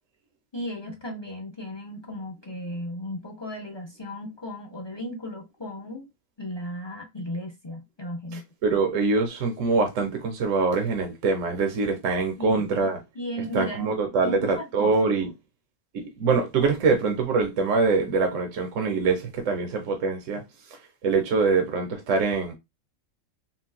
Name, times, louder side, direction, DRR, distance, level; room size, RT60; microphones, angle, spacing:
voice 1, 0.5-6.1 6.4-8.4 12.4-12.6 13.1-15.0, equal, 45° left, 0.3 m, -35 dB
voice 2, 8.6-13.0 13.5-15.3 15.9-20.4 21.0-22.5, right 4 dB, 70° right, 1.1 m, -24 dB
3.8 x 2.3 x 2.2 m
omnidirectional pair, 1.4 m